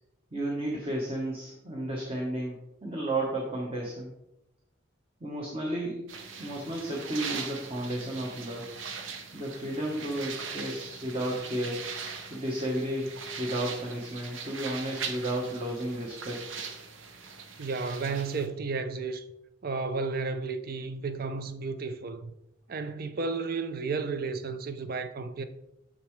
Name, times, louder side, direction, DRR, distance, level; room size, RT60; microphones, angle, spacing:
voice 1, 0.3-4.1 5.2-6.1 6.4-8.7 9.3-11.8 12.3-16.4, right 1 dB, 30° right, 1.0 m, -33 dB
sound 1, 6.1-18.5, right 5 dB, 80° right, 0.8 m, -40 dB
voice 2, 17.6-19.3 19.6-22.3 22.7-25.4, right 4 dB, 50° right, 0.5 m, -33 dB
6.8 x 6.4 x 3.1 m
head